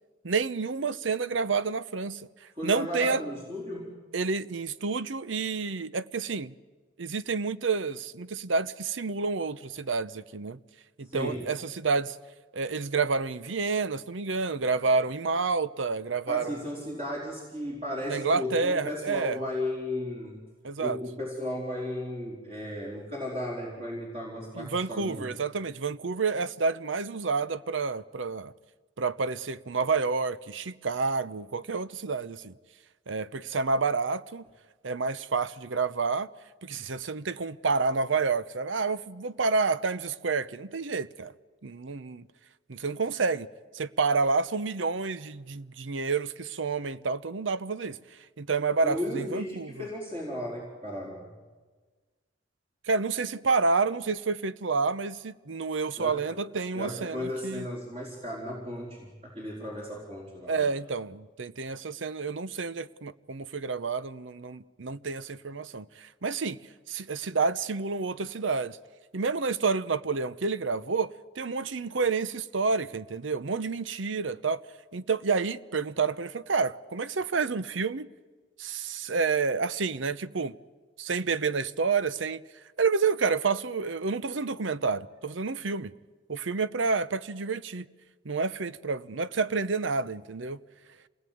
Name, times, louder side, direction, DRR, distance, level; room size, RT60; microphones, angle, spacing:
voice 1, 0.2-2.3 2.6-3.2 4.1-6.5 7.0-10.6 11.0-12.2 12.5-16.6 18.1-19.4 20.6-21.0 24.5-28.5 29.0-32.5 33.1-34.4 34.8-36.3 36.6-41.3 41.6-42.2 42.7-43.5 43.7-48.0 48.4-49.9 52.9-57.7 60.5-66.6 66.9-68.8 69.1-74.6 74.9-78.1 78.6-80.6 81.0-82.4 82.8-85.9 86.3-87.9 88.2-90.6, right 4 dB, 75° right, 0.8 m, -29 dB
voice 2, 2.5-3.9 11.0-11.5 16.3-20.4 20.8-25.3 48.8-51.3 56.0-56.4 56.7-60.6, left 1 dB, 30° right, 4.5 m, -35 dB
27.0 x 19.5 x 9.4 m
head